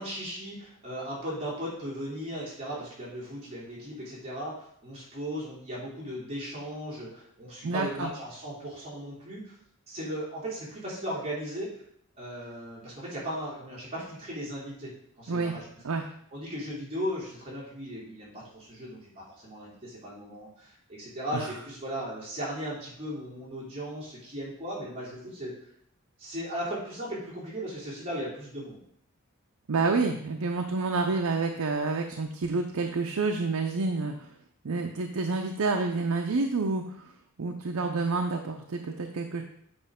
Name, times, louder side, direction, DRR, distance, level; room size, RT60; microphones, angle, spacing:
voice 1, 0.0-9.5 9.9-11.8 12.2-14.9 15.2-15.6 16.3-25.5 26.2-28.8, equal, 30° right, -6 dB, 2.9 m, -37 dB
voice 2, 7.6-8.1 15.3-15.5 15.8-16.0 21.3-21.5 29.7-34.3 34.6-36.8 37.4-39.4, right 3 dB, 85° right, 3 dB, 0.6 m, -28 dB
7.8 x 5.1 x 3.6 m, 0.68 s
head